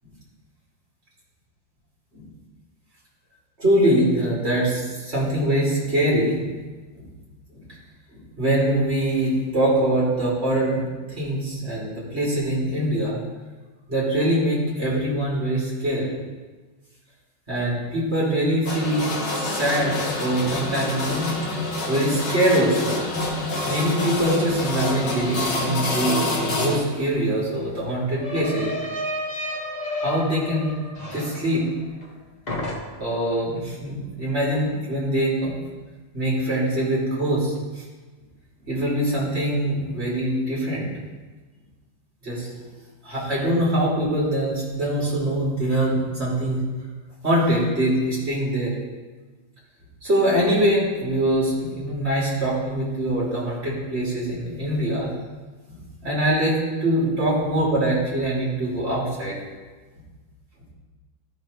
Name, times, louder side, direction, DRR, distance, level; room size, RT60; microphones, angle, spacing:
voice 1, 3.6-6.5 6.9-7.1 7.5-7.7 8.1-13.2 13.9-16.1 17.5-21.4 21.9-23.0 23.7-28.7 30.0-30.7 31.1-31.6 33.0-35.5 36.1-37.8 38.7-40.9 42.2-42.5 43.0-46.6 47.2-48.7 50.0-55.1 55.7-59.3, right 1 dB, 30° right, -7 dB, 3.0 m, -23 dB
sound 1, 18.7-26.8, left 2 dB, 70° left, 2.1 m, -27 dB
sound 2, 27.0-32.2 32.5-33.2, left 1 dB, 45° left, 0.5 m, -32 dB
13.0 x 6.2 x 3.2 m, 1.3 s
omnidirectional pair, 2.3 m